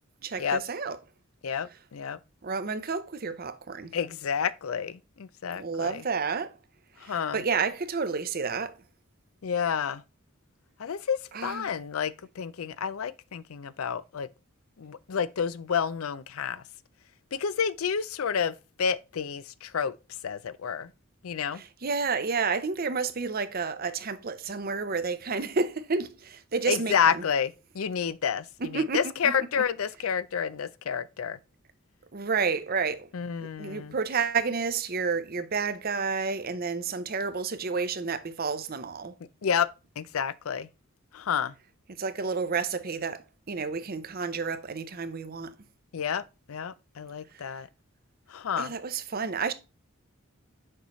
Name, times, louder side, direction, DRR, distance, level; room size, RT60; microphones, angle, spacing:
voice 1, 0.2-1.0 2.4-3.9 5.6-6.6 7.0-8.8 11.3-11.7 21.5-27.2 28.6-29.6 32.1-33.1 33.4-39.1 42.0-45.5 48.6-49.5, right 5 dB, 45° right, 0.7 m, -30 dB
voice 2, 1.4-2.2 3.9-6.0 7.0-7.4 9.4-10.0 10.8-14.3 14.8-16.6 17.3-20.0 20.2-20.9 21.2-21.6 26.7-31.4 33.1-33.9 39.4-39.7 40.0-40.7 41.1-41.5 45.9-47.7 48.3-48.7, left 7 dB, 80° left, 0.5 m, -30 dB
6.5 x 5.6 x 3.1 m
head